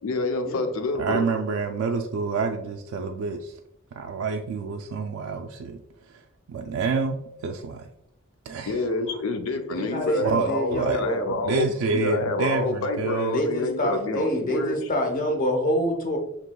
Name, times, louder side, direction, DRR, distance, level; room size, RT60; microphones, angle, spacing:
voice 1, 0.0-1.2 8.7-14.8, left 2 dB, 75° left, 6 dB, 0.5 m, -28 dB
voice 2, 1.0-3.6 3.9-7.9 8.5-8.8 9.1-9.2 10.2-11.0 11.3-13.4, right 4 dB, 85° right, 4 dB, 0.3 m, -28 dB
voice 3, 9.7-11.2 13.3-16.2, equal, 40° left, 3 dB, 0.7 m, -26 dB
6.0 x 3.0 x 2.2 m, 0.81 s
head